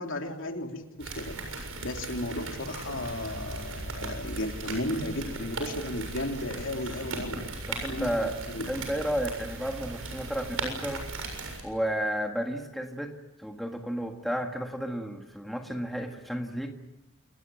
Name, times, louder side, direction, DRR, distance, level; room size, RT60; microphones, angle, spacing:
voice 1, 0.0-7.4 7.9-8.6, left 1 dB, 65° left, 3 dB, 3.1 m, -35 dB
sound 1, 1.0-11.6, right 2 dB, 85° right, 7.2 m, -37 dB
voice 2, 7.7-8.4 8.7-11.1 11.6-13.1 13.4-16.7, equal, ahead, 2 dB, 1.8 m, -32 dB
28.5 x 19.0 x 9.2 m, 0.97 s
head